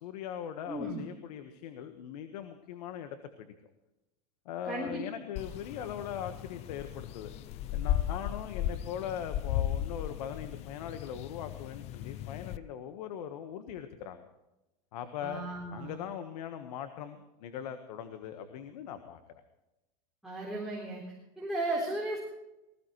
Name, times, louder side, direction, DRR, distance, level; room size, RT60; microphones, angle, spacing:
voice 1, 0.0-3.5 4.4-7.3 7.7-14.3 14.9-15.4 15.7-19.2, left 9 dB, 70° left, 8 dB, 1.4 m, -40 dB
voice 2, 0.7-1.0 4.6-5.0 15.2-16.0 20.2-21.0 21.4-22.2, right 2 dB, ahead, -5 dB, 4.0 m, -35 dB
sound 1, 5.4-12.6, left 12 dB, 30° left, 0.5 m, -36 dB
20.0 x 15.5 x 3.2 m, 0.96 s
supercardioid pair, 150°, 21 cm